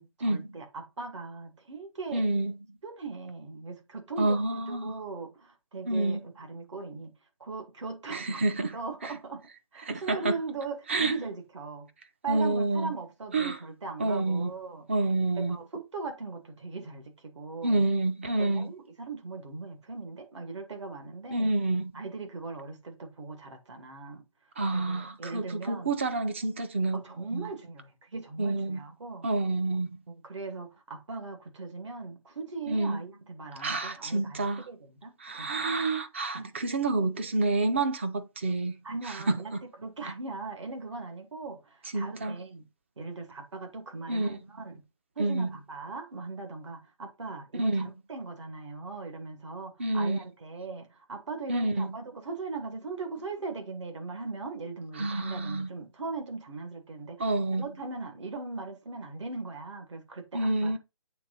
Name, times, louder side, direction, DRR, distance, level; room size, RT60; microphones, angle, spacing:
voice 1, 0.0-2.3 2.8-7.1 7.4-11.9 12.2-14.9 15.4-17.9 18.4-21.5 21.9-24.2 24.7-25.9 26.9-29.2 30.1-35.7 36.3-36.5 38.8-42.7 43.0-44.8 45.2-60.8, right 4 dB, 60° right, 2.5 m, -39 dB
voice 2, 2.1-2.5 4.2-4.9 5.9-6.2 8.1-8.7 9.0-9.1 9.8-10.4 10.9-11.1 12.3-12.9 13.3-13.6 14.0-14.5 14.9-15.6 17.6-18.7 21.3-21.9 24.6-27.0 27.3-27.5 28.4-28.8 29.2-30.0 32.7-33.0 33.6-34.6 35.2-38.8 39.0-39.6 41.9-42.4 44.1-44.4 45.2-45.5 47.5-47.9 49.8-50.2 51.5-51.9 55.0-55.7 57.2-57.7 60.3-60.8, right 2 dB, 20° right, 0.5 m, -28 dB
8.3 x 3.7 x 4.2 m
hypercardioid pair, 170°, 18 cm